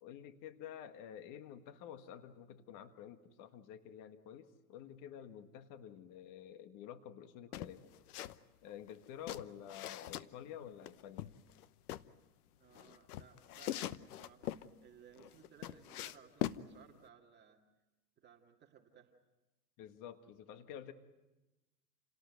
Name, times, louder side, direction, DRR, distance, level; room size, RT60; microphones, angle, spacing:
voice 1, 0.0-7.9 8.6-11.3 19.8-20.9, left 9 dB, 40° left, 9 dB, 1.6 m, -50 dB
sound 1, 7.5-8.4 8.7-10.3 10.9-12.1 12.7-14.7 15.2-16.6, left 13 dB, 65° left, 1.1 m, -42 dB
voice 2, 12.6-17.6 18.2-19.1, right 8 dB, 20° right, 1 dB, 2.1 m, -61 dB
29.0 x 18.0 x 9.3 m, 1.1 s
hypercardioid pair, 120°, 49 cm